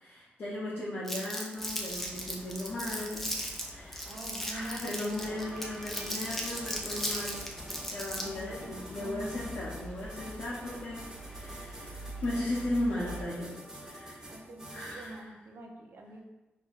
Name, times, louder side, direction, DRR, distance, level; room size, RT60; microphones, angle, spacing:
voice 1, 0.0-4.2 4.5-7.5 7.9-14.3 14.7-15.2, left 1 dB, 70° left, -8 dB, 0.8 m, -37 dB
Crumpling crinkling, 1.1-8.4, equal, 5° left, 0.6 m, -37 dB
sound 1, 1.6-13.2, equal, 35° left, 1.2 m, -47 dB
voice 2, 4.1-5.3 8.2-9.3 14.3-16.2, right 1 dB, 65° right, 1 dB, 0.6 m, -45 dB
sound 2, 5.2-15.2, right 1 dB, 15° right, 1.0 m, -47 dB
4.3 x 2.8 x 2.4 m, 1.1 s
cardioid pair, 75°, 4 cm